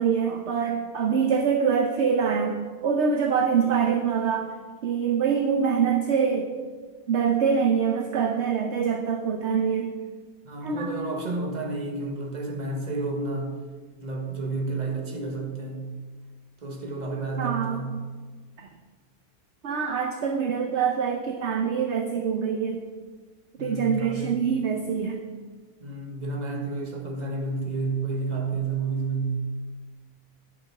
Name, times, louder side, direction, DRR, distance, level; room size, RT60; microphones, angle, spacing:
voice 1, 0.0-4.5 4.8-6.5 7.1-9.9 10.6-10.9 17.4-17.8 19.6-22.8 23.6-25.2, right 6 dB, 55° right, 4 dB, 0.9 m, -24 dB
voice 2, 10.4-13.6 14.0-16.0 16.6-18.0 23.6-24.5 25.8-29.5, right 3 dB, 30° right, 2 dB, 1.3 m, -30 dB
11.0 x 6.4 x 5.9 m, 1.5 s
omnidirectional pair, 1.6 m